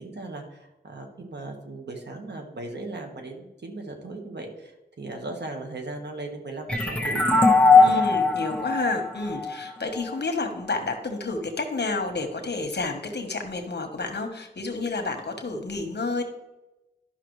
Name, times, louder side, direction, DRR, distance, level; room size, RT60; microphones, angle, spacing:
voice 1, 0.0-8.1, right 2 dB, 80° right, 2 dB, 1.4 m, -37 dB
sound 1, 6.7-10.1, left 3 dB, 5° left, 1.0 m, -20 dB
voice 2, 7.8-16.2, left 3 dB, 75° left, 5 dB, 1.2 m, -30 dB
11.5 x 5.8 x 3.2 m, 1.0 s
wide cardioid pair, 65°, 17 cm